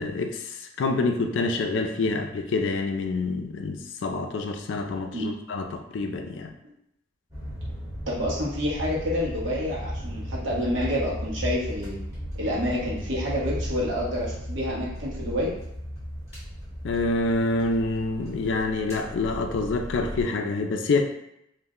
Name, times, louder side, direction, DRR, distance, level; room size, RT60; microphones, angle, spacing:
voice 1, 0.0-6.5 16.8-21.0, left 3 dB, 70° left, 5 dB, 0.3 m, -27 dB
sound 1, 7.3-20.2, equal, 15° right, 0.8 m, -35 dB
voice 2, 8.1-12.0 12.3-15.5, equal, 75° right, -6 dB, 1.0 m, -28 dB
2.5 x 2.1 x 3.6 m, 0.78 s
head